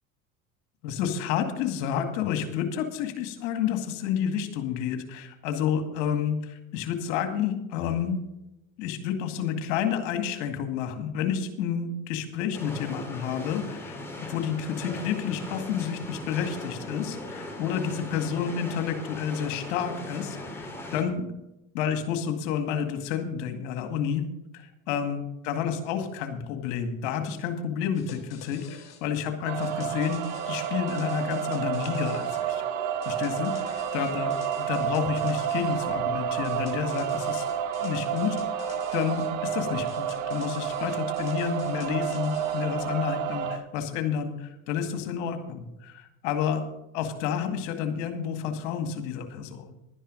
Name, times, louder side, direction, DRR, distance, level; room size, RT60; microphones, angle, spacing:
voice 1, 0.8-8.2 8.8-21.3 21.7-24.3 24.5-32.6 33.1-37.5 37.8-38.7 38.9-46.6 46.9-49.7, left 8 dB, 70° left, 7 dB, 2.2 m, -30 dB
sound 1, 12.5-21.0, left 1 dB, 5° left, 4.6 m, -39 dB
sound 2, 27.9-29.0 29.6-32.5 33.0-35.9 36.4-39.3 39.9-42.6, left 7 dB, 45° left, 4.3 m, -48 dB
sound 3, 29.4-43.6, right 9 dB, 75° right, 1.8 m, -30 dB
12.0 x 10.0 x 5.2 m, 0.89 s
hypercardioid pair, 80°, 37 cm